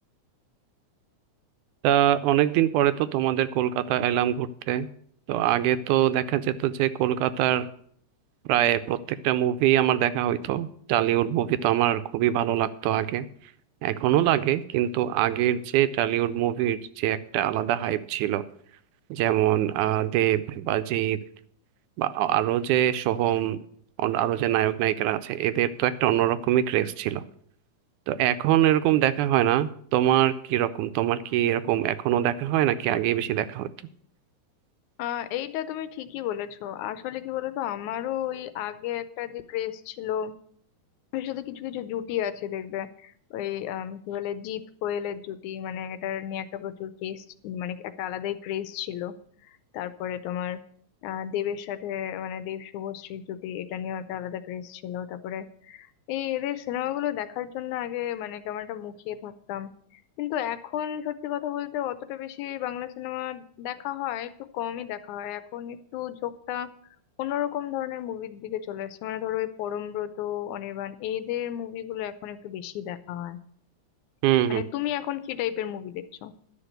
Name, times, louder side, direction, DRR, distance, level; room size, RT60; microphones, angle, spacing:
voice 1, 1.8-4.9 5.3-7.7 8.5-13.3 13.8-18.4 19.1-21.2 22.0-23.6 24.0-27.2 28.1-33.7 74.2-74.6, right 12 dB, 80° right, 12 dB, 2.0 m, -24 dB
voice 2, 35.0-40.3 41.1-49.1 49.4-50.6 51.0-66.7 67.2-73.4 74.5-76.3, left 11 dB, 80° left, 12 dB, 2.0 m, -33 dB
11.5 x 6.0 x 7.8 m, 0.62 s
omnidirectional pair, 3.6 m